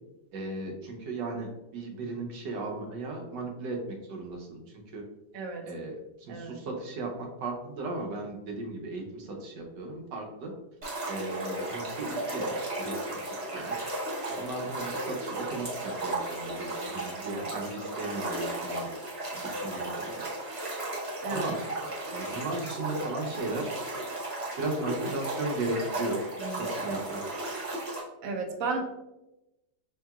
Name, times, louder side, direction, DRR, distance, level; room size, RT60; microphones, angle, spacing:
voice 1, 0.3-4.6 4.9-5.0 5.6-10.5 11.1-13.9 14.3-18.9 19.3-20.2 21.3-21.6 22.1-23.7 24.6-26.2 26.5-27.2, right 2 dB, 90° right, 1 dB, 1.4 m, -36 dB
voice 2, 5.3-5.7 6.3-6.6 17.3-17.5 21.2-21.5 21.8-21.9 26.1-27.0 28.2-28.8, right 4 dB, 65° right, 3 dB, 1.0 m, -35 dB
sound 1, 10.8-28.0, right 2 dB, 30° right, 0.6 m, -35 dB
5.4 x 2.8 x 2.3 m, 0.96 s
omnidirectional pair, 1.8 m